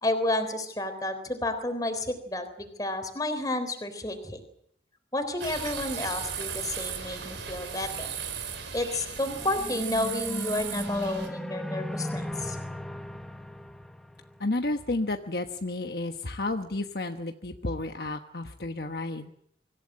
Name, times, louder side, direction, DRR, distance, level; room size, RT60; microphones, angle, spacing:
voice 1, 0.0-4.4 5.1-8.2 8.7-12.6, left 1 dB, 20° left, 8 dB, 3.7 m, -31 dB
sound 1, 5.4-11.3, right 7 dB, 85° right, 4.6 m, -36 dB
sound 2, 9.3-14.8, equal, ahead, 1.3 m, -36 dB
voice 2, 14.4-19.3, left 2 dB, 60° left, 5 dB, 1.2 m, -31 dB
25.0 x 16.0 x 8.7 m, 0.73 s
head